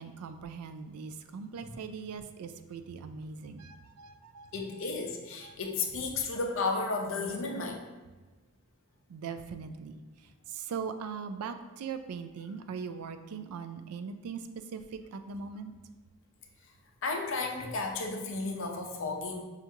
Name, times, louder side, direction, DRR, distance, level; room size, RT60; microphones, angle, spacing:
voice 1, 0.0-4.5 5.4-5.5 9.1-10.0 10.5-14.4 14.7-15.7, right 6 dB, 85° right, 9 dB, 0.3 m, -40 dB
voice 2, 4.5-7.9 17.0-19.4, left 3 dB, 55° left, 2 dB, 0.5 m, -33 dB
5.7 x 2.4 x 2.7 m, 1.2 s
head